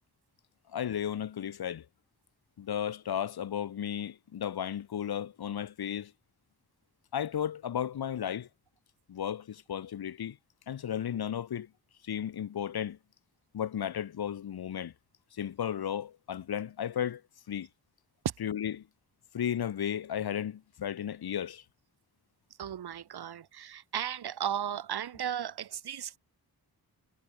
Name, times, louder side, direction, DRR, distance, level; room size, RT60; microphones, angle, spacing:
voice 1, 0.7-1.9 2.6-6.1 7.1-8.5 9.1-10.4 10.7-11.7 12.0-13.0 13.5-14.9 15.3-17.2 17.5-17.7 18.4-18.9 19.3-21.6, left 9 dB, 80° left, 1.2 m, -34 dB
voice 2, 22.6-26.2, right 9 dB, 85° right, 1.3 m, -35 dB
wide cardioid pair, 125°, 38 cm